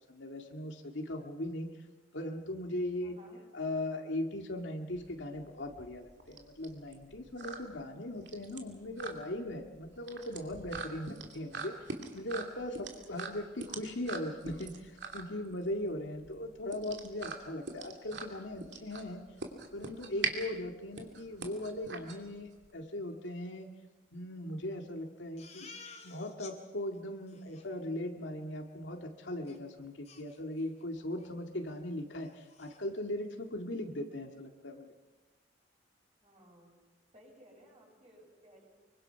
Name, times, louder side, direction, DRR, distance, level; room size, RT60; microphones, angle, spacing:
voice 1, 0.1-1.8 2.1-3.2 3.5-19.3 19.7-23.7 24.1-25.7 26.0-34.9, left 1 dB, 75° left, 3 dB, 2.1 m, -39 dB
voice 2, 3.0-3.4 12.8-13.5 36.2-36.7 37.1-38.6, equal, 35° right, -2 dB, 7.3 m, -58 dB
sound 1, 4.9-22.7, right 4 dB, 65° right, 2.7 m, -42 dB
Crying sobbing, 25.4-26.5 26.9-27.0 27.3-27.7 29.5-29.6 30.0-30.8 31.2-31.4 31.7-31.8 32.1-32.8, left 5 dB, 35° left, 3.0 m, -53 dB
25.0 x 23.5 x 5.8 m, 1.2 s
head